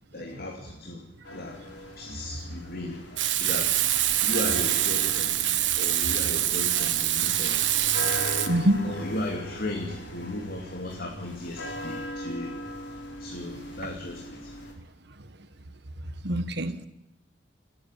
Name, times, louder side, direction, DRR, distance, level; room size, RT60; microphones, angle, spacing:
voice 1, 0.1-1.0 1.3-1.6 2.0-3.0 3.4-3.9 4.2-5.4 5.8-8.3 8.8-12.5 13.2-14.5, left 1 dB, 55° left, 1 dB, 2.9 m, -36 dB
sound 1, 1.2-14.7, left 1 dB, 85° left, 5.4 m, -39 dB
Frying (food), 3.2-8.5, right 12 dB, 85° right, 1.5 m, -25 dB
voice 2, 8.5-8.8 16.2-16.9, right 1 dB, 65° right, 10 dB, 1.5 m, -24 dB
29.5 x 10.0 x 9.2 m, 0.84 s
head